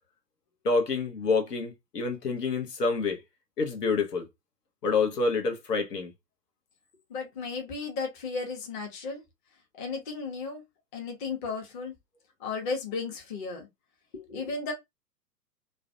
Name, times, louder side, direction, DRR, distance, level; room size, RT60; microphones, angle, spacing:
voice 1, 0.6-3.2 3.6-4.3 4.8-6.1, left 4 dB, 70° left, 0.8 m, -27 dB
voice 2, 7.1-9.2 9.7-10.6 10.9-11.9 12.4-13.7 14.1-14.7, left 4 dB, 30° left, 0.8 m, -34 dB
2.4 x 2.1 x 2.5 m
figure-of-eight pair, 115°, 50 cm